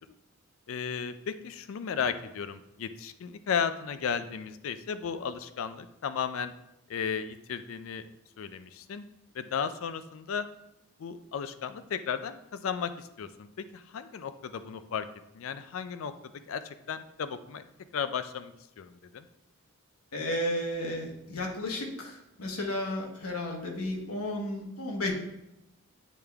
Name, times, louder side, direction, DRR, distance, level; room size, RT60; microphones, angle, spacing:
voice 1, 0.7-6.5 6.9-8.0 8.4-9.0 9.3-10.5 11.0-15.1 15.3-16.1 16.5-17.7 17.9-19.2, left 7 dB, 70° left, 11 dB, 0.4 m, -34 dB
voice 2, 20.1-25.1, left 1 dB, 85° left, 1 dB, 1.2 m, -33 dB
8.2 x 3.5 x 3.4 m, 0.86 s
head